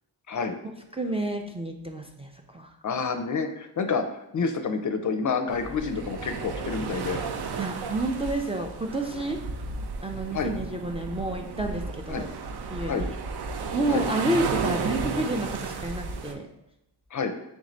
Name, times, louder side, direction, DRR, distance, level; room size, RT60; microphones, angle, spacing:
voice 1, 0.3-0.6 2.8-7.2 10.3-10.5 12.1-12.3 12.9-13.1 13.9-14.0 17.1-17.4, left 5 dB, 45° left, 7 dB, 0.5 m, -28 dB
voice 2, 0.9-2.7 7.6-9.4 10.0-12.3 12.7-13.2 13.7-16.5, right 2 dB, 15° right, 2 dB, 0.4 m, -30 dB
sound 1, 5.5-16.3, right 4 dB, 65° right, 0.6 m, -33 dB
3.5 x 3.1 x 3.9 m, 0.86 s
cardioid pair, 70°, 42 cm